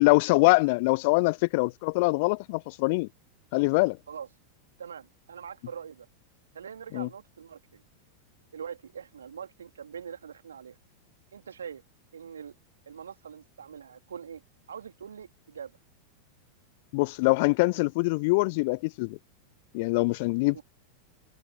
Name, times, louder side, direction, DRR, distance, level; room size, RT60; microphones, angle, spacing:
voice 1, 0.0-3.1 3.5-4.0 6.9-7.1 16.9-19.2 19.7-20.6, left 26 dB, 50° left, 0.5 m, -24 dB
voice 2, 4.8-6.1 6.5-7.8 8.5-10.8 11.3-11.8 12.1-12.6 12.9-14.4 14.7-15.7 20.5-20.6, right 7 dB, 70° right, 3.4 m, -43 dB
figure-of-eight pair, 90°, 0 cm